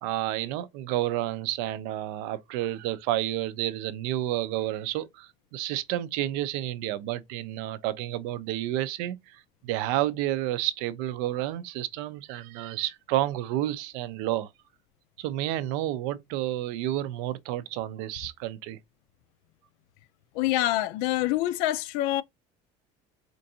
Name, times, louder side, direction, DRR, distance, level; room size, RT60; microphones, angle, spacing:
voice 1, 0.0-14.5 15.2-18.8, right 14 dB, 85° right, 0.5 m, -30 dB
voice 2, 20.4-22.2, left 15 dB, 80° left, 0.4 m, -26 dB
4.5 x 2.5 x 2.7 m
cardioid pair, 145°, 15 cm